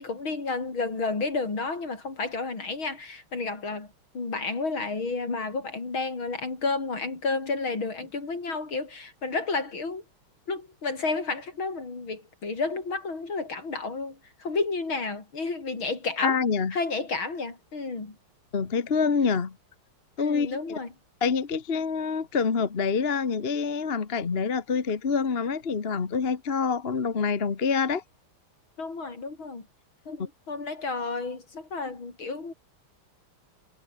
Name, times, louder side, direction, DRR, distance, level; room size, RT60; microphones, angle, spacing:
voice 1, 0.0-10.0 10.5-16.4 16.7-18.2 20.2-20.9 28.8-29.7 30.1-32.5, left 3 dB, 65° left, 5.5 m, -31 dB
voice 2, 16.2-16.7 18.5-19.6 20.2-20.8 21.2-28.0, left 5 dB, 30° left, 1.4 m, -26 dB
omnidirectional pair, 2.4 m